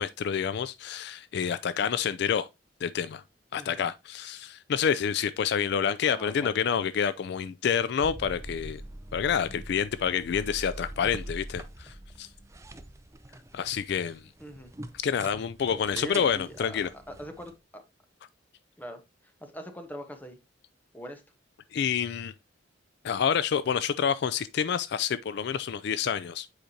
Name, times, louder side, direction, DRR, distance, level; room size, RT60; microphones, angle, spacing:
voice 1, 0.0-2.5 2.8-3.2 3.5-8.8 9.1-12.3 13.5-14.3 15.0-16.9 21.7-22.3 23.0-26.5, left 7 dB, 60° left, 0.3 m, -28 dB
voice 2, 3.6-3.9 6.1-6.6 14.4-14.7 15.7-16.8 17.1-17.8 18.8-20.4 20.9-21.2, equal, 10° left, 1.1 m, -42 dB
sound 1, 8.0-17.6, right 1 dB, 15° right, 0.5 m, -44 dB
7.9 x 5.0 x 2.8 m
head